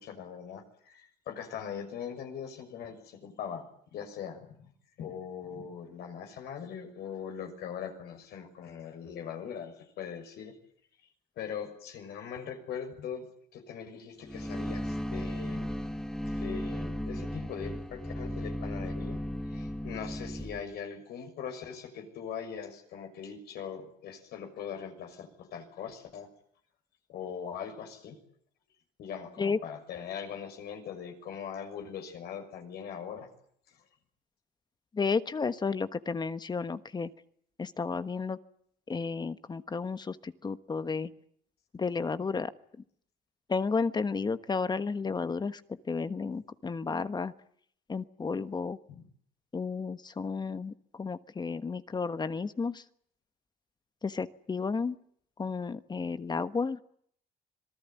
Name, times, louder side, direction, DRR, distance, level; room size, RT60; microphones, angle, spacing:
voice 1, 0.0-4.7 5.0-10.6 11.0-11.1 11.4-13.3 13.5-15.7 16.3-19.2 19.4-26.3 27.1-28.2 29.0-33.3 33.7-33.8 48.9-49.0, left 7 dB, 70° left, 5 dB, 6.4 m, -41 dB
sound 1, 14.3-20.6, equal, 5° left, 1.8 m, -35 dB
voice 2, 34.9-37.1 37.6-38.4 38.9-41.1 41.7-42.5 43.5-47.3 47.9-48.8 49.5-52.8 54.0-55.0 55.4-56.8, left 4 dB, 25° left, 12 dB, 1.3 m, -32 dB
26.0 x 19.5 x 9.3 m, 0.65 s
cardioid pair, 110°, 17 cm